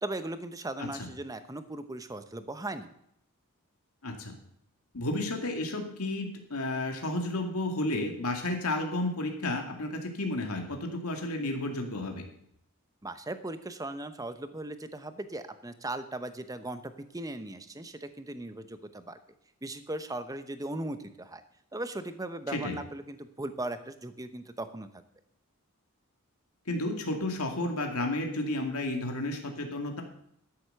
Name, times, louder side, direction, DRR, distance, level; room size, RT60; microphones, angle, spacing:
voice 1, 0.0-2.9 13.0-19.2 19.6-21.4 21.7-24.9, right 2 dB, 15° right, 10 dB, 0.9 m, -38 dB
voice 2, 4.0-4.3 4.9-12.2 22.5-22.8 26.7-30.0, left 2 dB, 80° left, 3 dB, 2.3 m, -32 dB
13.0 x 8.1 x 6.7 m, 0.73 s
head